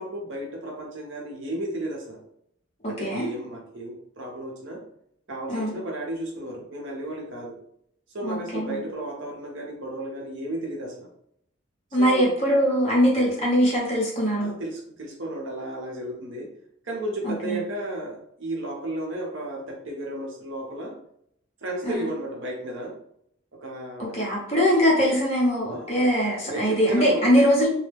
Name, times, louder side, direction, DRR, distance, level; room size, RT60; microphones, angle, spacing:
voice 1, 0.0-2.2 2.9-4.8 5.3-7.6 8.1-11.1 12.0-12.3 14.4-16.5 16.8-21.0 21.6-23.0 23.5-24.2 25.7-26.1 26.4-27.4, right 1 dB, 65° right, -1 dB, 0.8 m, -33 dB
voice 2, 8.2-8.8 11.9-14.5 17.2-17.6 21.8-22.1 24.0-27.7, equal, 30° left, -4 dB, 0.9 m, -22 dB
2.2 x 2.1 x 3.3 m, 0.70 s
head